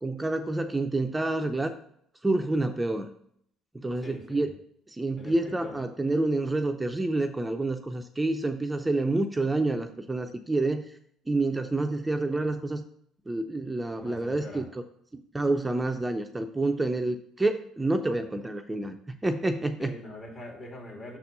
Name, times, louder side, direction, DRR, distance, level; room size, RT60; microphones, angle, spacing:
voice 1, 0.0-1.8 2.2-3.1 3.7-4.5 4.9-10.8 11.3-12.8 13.3-14.6 15.1-19.9, right 2 dB, 15° right, 6 dB, 0.5 m, -28 dB
voice 2, 4.0-4.5 5.2-5.9 14.0-14.7 19.8-21.2, left 1 dB, 45° left, 0 dB, 2.4 m, -43 dB
6.0 x 4.2 x 5.3 m, 0.69 s
hypercardioid pair, 60°, 0 cm